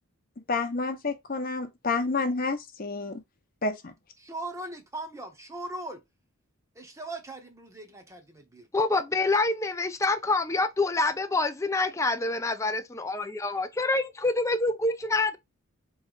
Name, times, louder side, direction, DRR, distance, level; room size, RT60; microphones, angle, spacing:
voice 1, 0.5-3.2 3.6-3.9, left 3 dB, 45° left, 0.8 m, -29 dB
voice 2, 4.2-6.0 6.7-8.7, right 2 dB, 15° right, 0.8 m, -39 dB
voice 3, 8.7-15.4, left 3 dB, 15° left, 0.4 m, -26 dB
4.3 x 3.1 x 3.9 m
head